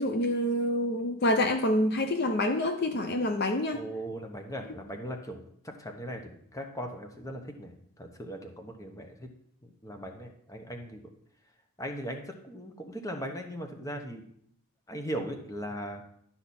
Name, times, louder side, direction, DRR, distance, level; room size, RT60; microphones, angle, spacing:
voice 1, 0.0-3.8, left 1 dB, 45° left, 7 dB, 0.5 m, -27 dB
voice 2, 3.7-7.7 8.0-9.3 9.8-11.0 11.8-14.2 14.9-16.0, equal, 15° left, 4 dB, 0.9 m, -39 dB
12.0 x 5.8 x 4.2 m, 0.68 s
head